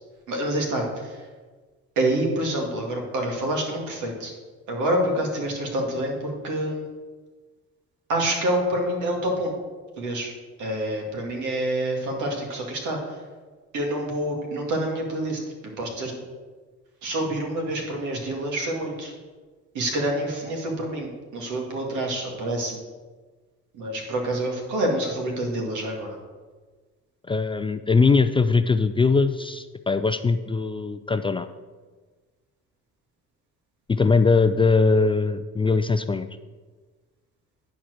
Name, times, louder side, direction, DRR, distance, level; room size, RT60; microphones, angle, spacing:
voice 1, 0.3-1.3 2.0-4.3 4.7-6.9 8.1-9.5 10.0-10.3 10.6-13.2 13.7-16.1 17.0-19.1 19.7-22.8 23.7-26.2, right 1 dB, 80° right, 1 dB, 2.1 m, -27 dB
voice 2, 27.3-31.5 33.9-36.3, left 4 dB, 20° left, 9 dB, 0.3 m, -21 dB
10.0 x 4.5 x 6.4 m, 1.4 s
cardioid pair, 95°, 30 cm